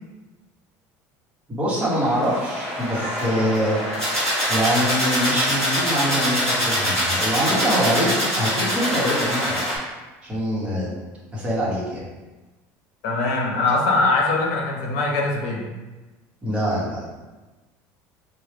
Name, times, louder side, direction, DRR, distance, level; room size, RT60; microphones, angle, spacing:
voice 1, 1.5-3.8 4.5-9.7 10.2-10.9 11.3-12.0 16.4-17.0, equal, 15° right, -7 dB, 1.0 m, -24 dB
sound 1, 1.9-9.8, equal, 10° left, 1.4 m, -24 dB
voice 2, 13.0-15.6, left 3 dB, 70° left, 0 dB, 0.7 m, -22 dB
4.4 x 2.1 x 3.3 m, 1.2 s
cardioid pair, 170°, 7 cm